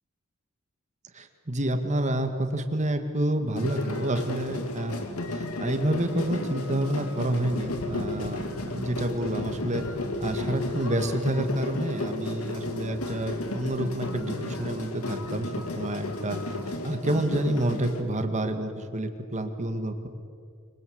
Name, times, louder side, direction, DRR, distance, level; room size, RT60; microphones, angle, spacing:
voice 1, 1.1-5.0 5.3-9.8 10.2-16.4 16.7-20.1, right 1 dB, 35° right, 7 dB, 2.1 m, -29 dB
sound 1, 3.6-18.0, left 1 dB, 85° left, 2.6 m, -33 dB
24.0 x 24.0 x 8.0 m, 2.2 s
head